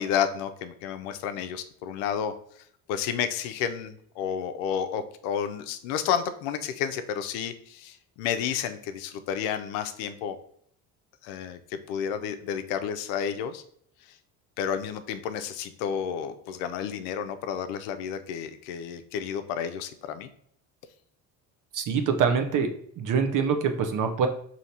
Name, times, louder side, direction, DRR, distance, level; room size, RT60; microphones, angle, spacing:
voice 1, 0.0-2.3 2.9-10.4 11.2-13.6 14.6-20.3, left 8 dB, 85° left, 9 dB, 0.5 m, -31 dB
voice 2, 21.7-22.7 23.0-24.3, right 6 dB, 50° right, 6 dB, 0.7 m, -24 dB
5.1 x 2.7 x 2.8 m, 0.66 s
supercardioid pair, 95°, 41 cm